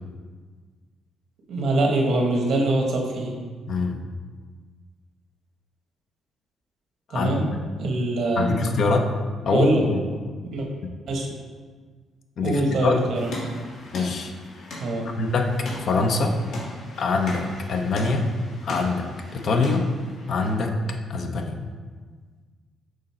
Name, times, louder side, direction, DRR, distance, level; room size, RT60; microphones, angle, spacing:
voice 1, 1.5-3.4 7.1-7.5 7.8-8.8 9.5-9.8 10.5-10.7 11.1-11.3 12.4-13.3 14.8-15.1, right 2 dB, 65° right, 1 dB, 1.1 m, -24 dB
voice 2, 3.7-4.0 7.1-7.5 8.4-9.1 9.4-10.0 12.4-13.0 13.9-14.3 15.2-16.4 17.0-18.3 18.6-19.9 20.3-20.7 21.1-21.6, left 3 dB, 60° left, 4 dB, 0.7 m, -24 dB
sound 1, 13.1-20.5, left 1 dB, 80° left, 1.8 m, -38 dB
6.4 x 3.9 x 4.3 m, 1.5 s
cardioid pair, 100°, 0 cm